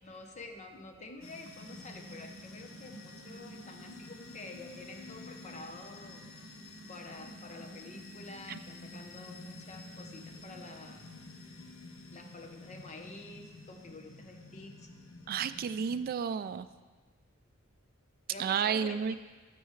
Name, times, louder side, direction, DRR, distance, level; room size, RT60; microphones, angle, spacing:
voice 1, 0.0-6.2 6.9-11.0 12.1-14.9 18.3-19.2, left 2 dB, 35° left, 4 dB, 0.8 m, -49 dB
sound 1, 1.2-16.0, left 1 dB, 75° left, 0.9 m, -49 dB
voice 2, 15.3-16.7 18.4-19.1, right 7 dB, 45° right, 12 dB, 0.3 m, -31 dB
12.0 x 7.0 x 3.2 m, 1.4 s
head